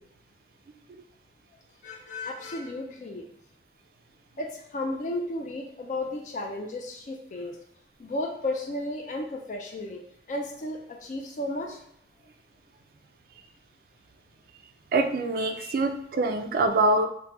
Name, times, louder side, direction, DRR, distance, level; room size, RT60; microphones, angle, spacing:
voice 1, 1.8-3.3 4.4-7.6 8.0-10.0 10.3-11.8 15.4-15.7, left 1 dB, 45° left, 1 dB, 0.3 m, -34 dB
voice 2, 14.9-17.1, right 2 dB, 55° right, 7 dB, 0.3 m, -24 dB
3.2 x 2.1 x 2.9 m, 0.73 s
head